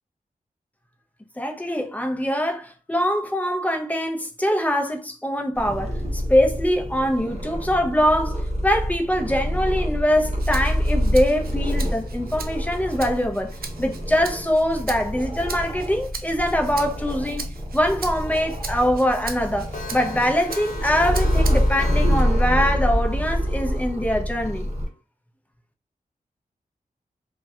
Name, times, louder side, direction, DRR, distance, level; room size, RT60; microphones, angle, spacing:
voice 1, 1.4-13.5 13.8-17.5 17.7-24.7, equal, 10° left, 0.5 m, -23 dB
Purr, 5.5-24.9, equal, 45° right, 0.7 m, -26 dB
Rattle (instrument), 10.4-21.8 22.3-23.5, right 5 dB, 80° right, 0.4 m, -40 dB
Clock, 12.6-15.7 16.1-16.2 16.5-16.6 17.0-17.1 17.4-17.5 17.9-18.0 18.3-18.4 18.7-18.8 19.1-25.0, left 1 dB, 55° left, 0.5 m, -40 dB
2.6 x 2.2 x 2.2 m
wide cardioid pair, 100°, 15 cm